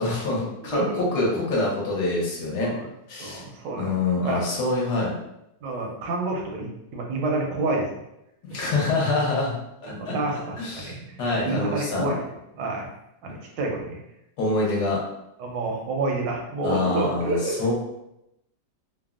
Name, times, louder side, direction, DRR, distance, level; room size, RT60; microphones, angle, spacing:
voice 1, 0.0-0.8 1.1-2.7 3.1-3.4 3.8-5.1 8.4-9.5 9.8-10.2 10.6-12.1 14.4-15.0 16.6-17.7, left 2 dB, 65° left, -4 dB, 1.3 m, -25 dB
voice 2, 0.7-1.0 2.6-2.9 3.2-3.9 4.2-4.4 5.6-7.9 8.5-8.6 9.9-11.2 11.4-12.2 12.5-12.9 13.2-14.0 15.4-17.6, right 2 dB, 80° right, 0 dB, 1.3 m, -28 dB
3.3 x 2.0 x 2.4 m, 0.85 s
omnidirectional pair, 2.0 m